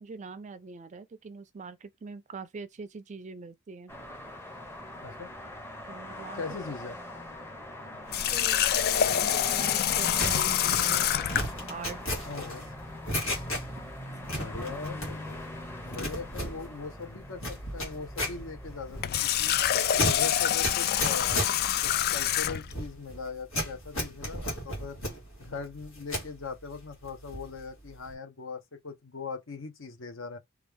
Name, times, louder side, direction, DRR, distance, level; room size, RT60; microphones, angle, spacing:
voice 1, 0.0-3.9 5.9-6.4 8.3-8.6 9.1-11.1 11.7-12.0 14.3-14.5, right 4 dB, 35° right, 0.4 m, -42 dB
sound 1, 3.9-21.3, left 1 dB, 10° left, 0.7 m, -42 dB
voice 2, 6.4-7.0 9.1-9.2 12.3-12.7 14.4-15.4 15.8-19.5 20.0-21.4 21.8-25.0 25.4-30.4, left 4 dB, 70° left, 0.8 m, -40 dB
Water tap faucet, 8.1-11.5 18.9-22.7, left 10 dB, 50° left, 0.3 m, -26 dB
sound 2, 10.2-13.9 14.2-15.4 15.7-26.3 26.7-27.6 27.8-28.1, equal, 85° left, 1.7 m, -35 dB
3.1 x 2.3 x 3.3 m
head